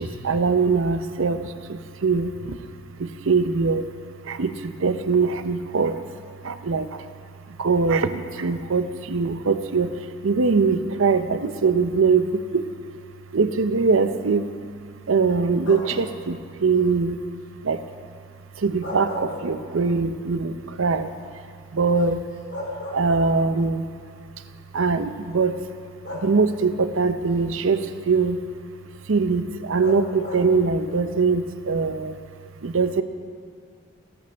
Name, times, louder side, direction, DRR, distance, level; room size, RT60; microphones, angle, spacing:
voice 1, 0.0-1.4 1.7-2.3 3.3-3.8 4.3-4.5 4.8-5.9 6.4-6.9 7.6-9.9 10.2-12.2 12.5-12.6 13.3-14.4 15.1-17.2 17.7-17.8 18.6-20.5 20.8-21.1 21.7-22.2 22.9-23.8 24.7-25.5 26.2-27.8 28.1-28.4 29.1-32.1 32.6-33.0, right 4 dB, 70° right, 10 dB, 0.6 m, -22 dB
sound 1, 15.6-16.1 18.6-20.0 20.4-20.5 22.0-22.1 22.5-23.6 24.7-24.8 26.0-26.8 29.8-30.7, left 1 dB, 60° left, 1.9 m, -35 dB
17.5 x 10.5 x 3.4 m, 2.1 s
head